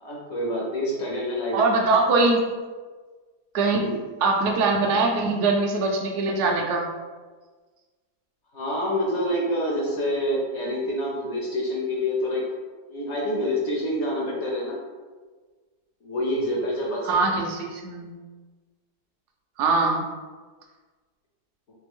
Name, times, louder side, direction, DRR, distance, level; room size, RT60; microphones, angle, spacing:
voice 1, 0.0-1.8 3.7-4.0 8.5-12.4 12.9-14.8 16.0-17.2, left 1 dB, 55° left, -2 dB, 0.9 m, -27 dB
voice 2, 1.5-2.4 3.5-3.9 4.2-6.9 17.1-18.1 19.6-20.0, right 3 dB, 65° right, 2 dB, 0.7 m, -22 dB
3.4 x 3.2 x 3.5 m, 1.4 s
omnidirectional pair, 1.8 m